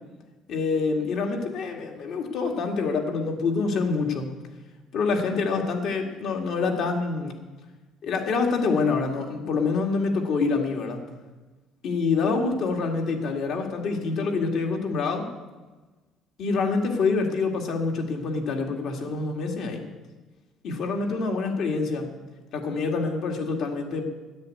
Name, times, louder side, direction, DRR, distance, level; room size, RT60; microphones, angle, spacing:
voice 1, 0.5-4.3 4.9-7.4 8.0-11.1 11.8-15.3 16.4-19.8 20.6-22.1 22.5-24.0, left 4 dB, 60° left, 2 dB, 2.3 m, -26 dB
10.5 x 9.4 x 8.6 m, 1.2 s
cardioid pair, 140°, 0 cm